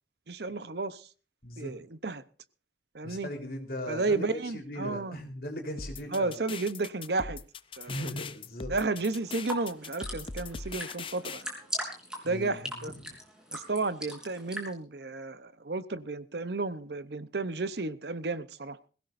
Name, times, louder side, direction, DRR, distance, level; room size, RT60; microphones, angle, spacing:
voice 1, 0.3-1.1 1.6-2.2 2.9-3.3 3.9-5.2 6.1-7.4 7.8-8.1 8.7-11.5 12.2-12.9 13.5-18.8, right 3 dB, 65° right, 0.8 m, -32 dB
voice 2, 1.4-1.7 3.0-6.3 7.9-8.7 12.3-13.1, equal, 55° left, 3.9 m, -38 dB
sound 1, 5.8-11.4, left 4 dB, 30° left, 0.6 m, -40 dB
sound 2, 9.1-14.7, equal, 5° right, 3.6 m, -40 dB
22.0 x 16.0 x 2.6 m
head